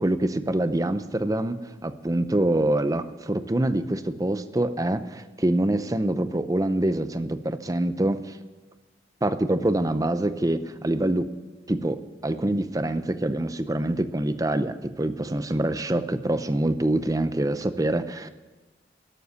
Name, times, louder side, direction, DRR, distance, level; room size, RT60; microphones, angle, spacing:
voice 1, 0.0-8.4 9.2-11.3 11.7-18.3, right 1 dB, 20° right, 11 dB, 0.6 m, -25 dB
13.0 x 7.8 x 9.6 m, 1.2 s
head